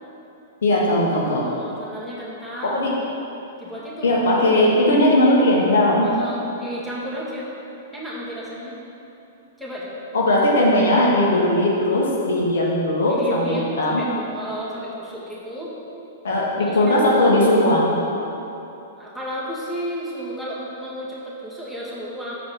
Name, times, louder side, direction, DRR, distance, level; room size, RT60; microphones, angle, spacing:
voice 1, 0.6-1.4 2.6-2.9 4.0-6.0 10.1-14.0 16.2-18.0, left 1 dB, 70° left, -4 dB, 1.5 m, -18 dB
voice 2, 1.4-2.8 3.6-4.2 6.0-7.5 7.9-8.8 9.6-9.9 13.1-15.7 16.6-17.1 19.0-22.3, equal, 5° left, -7 dB, 1.8 m, -33 dB
6.8 x 4.6 x 6.3 m, 3.0 s
figure-of-eight pair, 110°, 0 cm